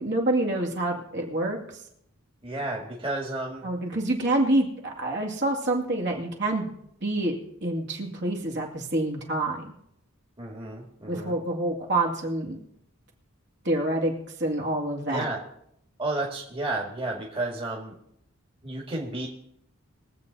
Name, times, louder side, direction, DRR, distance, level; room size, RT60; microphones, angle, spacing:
voice 1, 0.0-1.6 3.6-6.7 7.0-9.7 11.1-12.6 13.6-14.1 14.4-15.3, right 1 dB, 55° right, 0 dB, 2.3 m, -27 dB
voice 2, 2.4-3.7 10.4-11.4 15.1-15.4 16.0-18.0 18.6-19.3, right 2 dB, 25° right, -1 dB, 1.9 m, -32 dB
22.0 x 7.9 x 4.1 m, 0.74 s
head